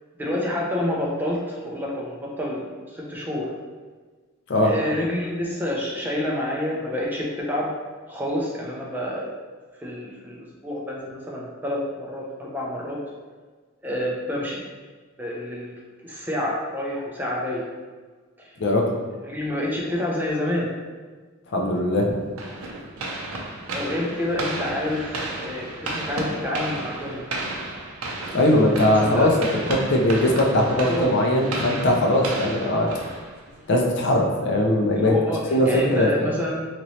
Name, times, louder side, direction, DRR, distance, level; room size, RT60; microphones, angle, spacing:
voice 1, 0.2-3.5 4.6-7.7 8.1-9.3 9.8-13.0 13.8-14.6 15.2-15.7 16.0-17.7 18.4-18.5 19.2-20.7 23.7-27.2 28.3-28.5 29.0-29.3 30.8-31.1 35.0-36.7, left 1 dB, 10° right, -4 dB, 0.4 m, -28 dB
voice 2, 21.5-22.1 28.3-29.3 29.7-32.9 33.7-35.2 35.5-36.4, left 1 dB, 55° left, 0 dB, 0.4 m, -20 dB
sound 1, 22.4-33.7, right 2 dB, 75° right, 0.5 m, -33 dB
2.9 x 2.9 x 2.7 m, 1.4 s
head